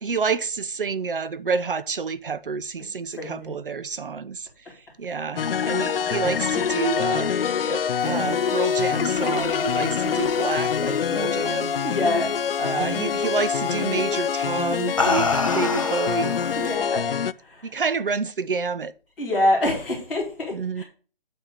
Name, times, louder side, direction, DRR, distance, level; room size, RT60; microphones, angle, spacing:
voice 1, 0.0-4.5 5.0-11.7 12.6-16.4 17.6-18.9 20.5-20.8, right 5 dB, 65° right, 0.7 m, -28 dB
voice 2, 3.2-3.5 11.8-12.3 16.5-17.0 17.5-17.7 19.2-20.8, left 1 dB, 5° left, 1.8 m, -25 dB
sound 1, 5.4-17.3, left 7 dB, 75° left, 0.5 m, -25 dB
sound 2, 8.9-11.8 12.1-12.5 13.8-14.0 14.6-16.8, left 3 dB, 35° left, 0.6 m, -28 dB
9.1 x 4.3 x 6.5 m
hypercardioid pair, 180°, 29 cm